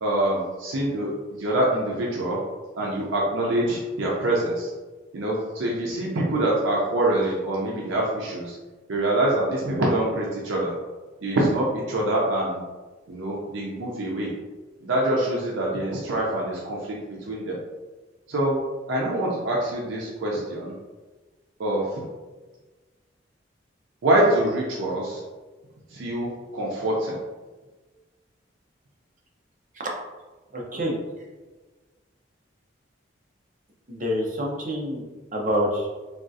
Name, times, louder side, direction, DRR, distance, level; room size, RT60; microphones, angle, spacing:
voice 1, 0.0-2.4 2.8-4.7 5.1-8.6 8.9-10.8 11.2-12.6 13.1-14.3 14.8-17.6 18.3-18.6 18.9-20.8 21.6-22.0 24.0-25.2 25.9-27.2, right 1 dB, 90° right, -3 dB, 0.5 m, -25 dB
voice 2, 30.5-31.0 33.9-35.0 35.3-35.9, equal, 40° right, -1 dB, 0.6 m, -26 dB
3.6 x 2.3 x 2.6 m, 1.3 s
head